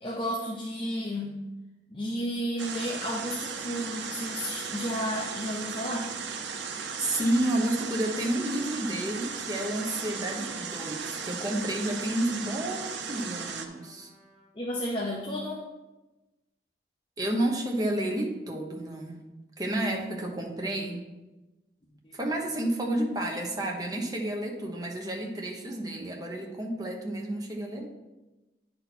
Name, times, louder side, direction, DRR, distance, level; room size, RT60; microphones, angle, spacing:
voice 1, 0.0-1.4 1.9-6.1 14.5-15.6 22.0-22.2, equal, 30° left, -3 dB, 0.8 m, -32 dB
sound 1, 2.6-13.7, right 6 dB, 85° right, 0.7 m, -36 dB
Trumpet, 6.1-14.5, equal, 5° right, 2.1 m, -55 dB
voice 2, 7.0-14.1 17.2-19.2 19.6-21.1 22.1-27.9, right 1 dB, 20° right, 0 dB, 1.0 m, -30 dB
9.6 x 4.4 x 4.2 m, 1.1 s
head